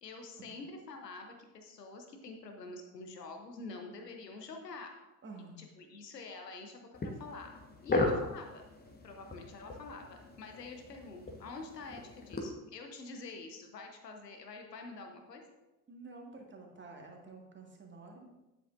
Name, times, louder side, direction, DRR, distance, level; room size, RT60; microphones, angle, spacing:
voice 1, 0.0-5.0 5.6-15.4, left 3 dB, 80° left, 4 dB, 1.1 m, -47 dB
voice 2, 5.2-5.6 15.9-18.3, right 3 dB, 25° right, 1 dB, 1.8 m, -50 dB
sound 1, 6.9-12.5, left 2 dB, 20° left, 1.3 m, -37 dB
10.5 x 8.3 x 2.6 m, 1.0 s
figure-of-eight pair, 55°, 48 cm